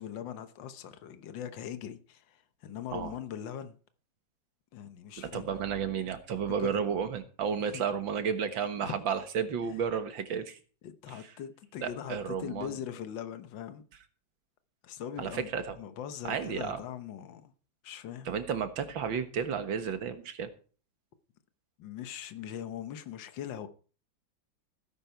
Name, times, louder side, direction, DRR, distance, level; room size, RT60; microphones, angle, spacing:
voice 1, 0.0-3.8 4.7-5.6 6.6-6.8 7.7-7.8 8.8-8.9 10.8-13.8 14.8-15.5 15.8-17.5 17.8-18.3 21.8-23.7, left 9 dB, 75° left, 1.7 m, -41 dB
voice 2, 5.2-10.6 11.8-12.8 15.2-15.8 16.2-16.8 18.3-20.5, right 7 dB, 85° right, 2.2 m, -32 dB
17.0 x 10.0 x 4.5 m
omnidirectional pair, 2.1 m